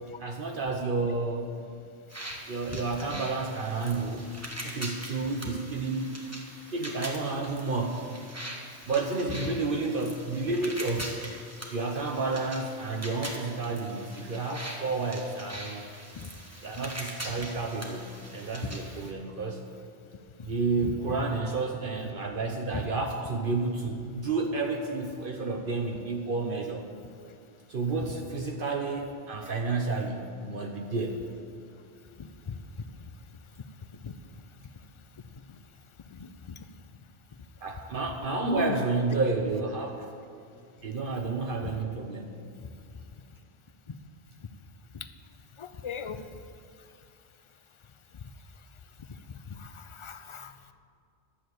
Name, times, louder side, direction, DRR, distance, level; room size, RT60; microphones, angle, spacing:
voice 1, 0.2-1.5 2.5-4.3 4.6-6.1 6.7-8.1 8.9-11.2 11.7-15.8 16.6-19.6 20.4-26.9 27.7-31.3 37.6-40.1 40.8-42.5, right 3 dB, 60° right, 2 dB, 1.0 m, -31 dB
sound 1, 2.1-19.1, right 1 dB, 15° right, 1.3 m, -42 dB
voice 2, 32.2-32.6 34.0-34.1 36.1-36.6 38.4-38.8 43.9-44.0 44.9-45.1 45.6-46.4 49.3-50.5, left 5 dB, 40° left, 10 dB, 0.5 m, -37 dB
11.5 x 6.9 x 7.9 m, 2.4 s
omnidirectional pair, 1.0 m